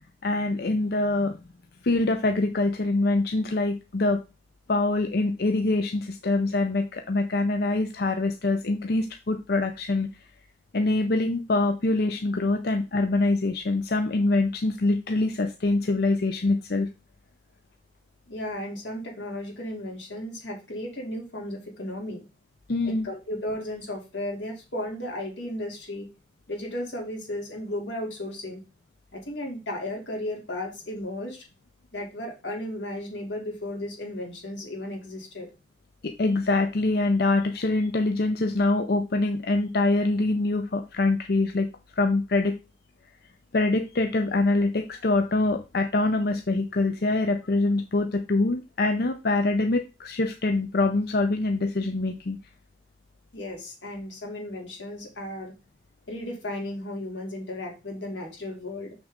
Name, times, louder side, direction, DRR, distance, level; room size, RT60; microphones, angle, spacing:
voice 1, 0.2-1.4 1.8-4.2 4.7-10.1 10.7-16.9 22.7-23.1 36.0-41.7 42.0-42.5 43.5-52.4, left 2 dB, 60° left, 7 dB, 0.6 m, -24 dB
voice 2, 18.3-22.2 22.8-26.1 26.5-28.6 29.1-31.4 31.9-35.5 53.3-55.5 56.1-58.9, left 1 dB, 85° left, 0 dB, 2.9 m, -34 dB
6.3 x 6.3 x 3.6 m, 0.29 s
head